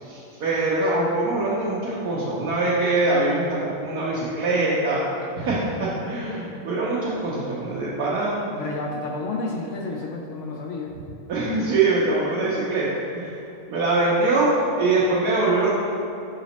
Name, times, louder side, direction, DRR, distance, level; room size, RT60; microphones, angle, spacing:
voice 1, 0.0-5.0 5.4-8.4 11.3-12.9 13.1-13.3 13.7-15.7, right 2 dB, 90° right, -8 dB, 1.4 m, -23 dB
voice 2, 8.5-11.0, left 3 dB, 65° left, 0 dB, 0.8 m, -30 dB
5.8 x 4.0 x 4.1 m, 2.8 s
omnidirectional pair, 1.6 m